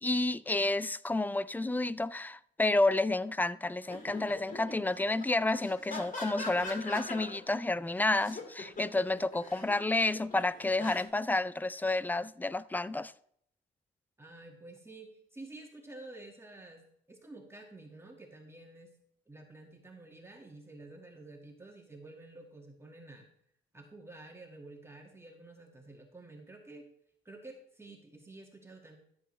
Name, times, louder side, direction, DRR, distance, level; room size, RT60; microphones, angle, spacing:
voice 1, 0.0-13.1, left 2 dB, 10° left, 0.3 m, -30 dB
sound 1, 3.8-7.6 8.0-11.0, left 3 dB, 45° left, 2.3 m, -43 dB
voice 2, 14.2-16.8 17.1-18.9 19.3-23.3 23.7-26.9 27.3-29.0, right 2 dB, 15° right, 1.8 m, -50 dB
13.5 x 7.9 x 3.2 m
cardioid pair, 90°, 20 cm